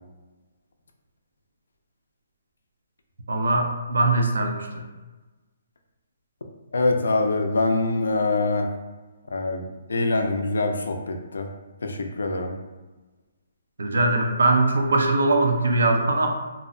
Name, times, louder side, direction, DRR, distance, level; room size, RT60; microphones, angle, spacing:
voice 1, 3.3-4.8 13.8-16.3, right 2 dB, 85° right, 3 dB, 0.4 m, -21 dB
voice 2, 6.7-8.7 9.3-11.5 11.8-12.5, left 3 dB, 90° left, 4 dB, 0.4 m, -24 dB
2.6 x 2.0 x 2.5 m, 1.2 s
hypercardioid pair, 165°, 0 cm